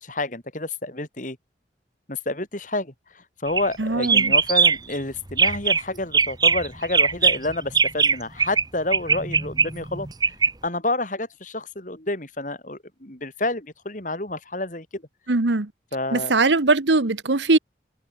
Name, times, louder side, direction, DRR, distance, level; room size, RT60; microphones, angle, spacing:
voice 1, 0.0-1.4 2.1-10.4 10.6-15.0 15.9-16.3, left 2 dB, 45° left, 3.7 m, -29 dB
sound 1, 3.5-3.7 4.0-5.0 5.3-5.8 6.1-8.6 8.9-10.5, right 5 dB, 20° right, 0.8 m, -20 dB
voice 2, 3.8-4.3 15.3-15.7 16.1-17.6, right 3 dB, 85° right, 1.2 m, -20 dB
head